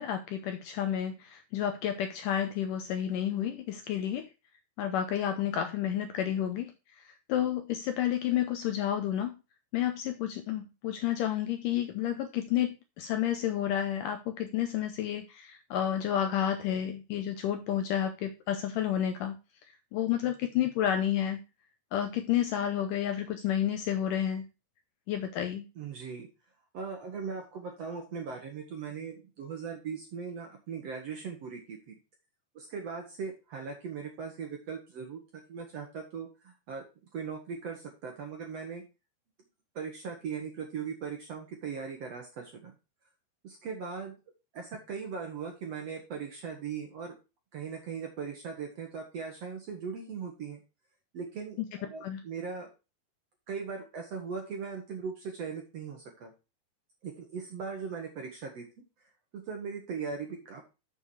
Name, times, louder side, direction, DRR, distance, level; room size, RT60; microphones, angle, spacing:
voice 1, 0.0-4.3 4.8-9.4 9.7-19.4 19.9-21.4 21.9-24.5 25.1-25.7 52.0-52.2, left 10 dB, 80° left, 7 dB, 2.0 m, -30 dB
voice 2, 25.8-26.3 26.7-32.0 32.6-35.2 35.5-36.9 37.1-38.8 39.8-42.7 43.4-44.2 44.5-47.2 47.5-50.6 51.1-52.7 53.5-56.3 57.0-58.7 59.0-60.6, right 6 dB, 60° right, 2 dB, 1.8 m, -39 dB
7.2 x 6.5 x 4.7 m, 0.28 s
omnidirectional pair, 4.5 m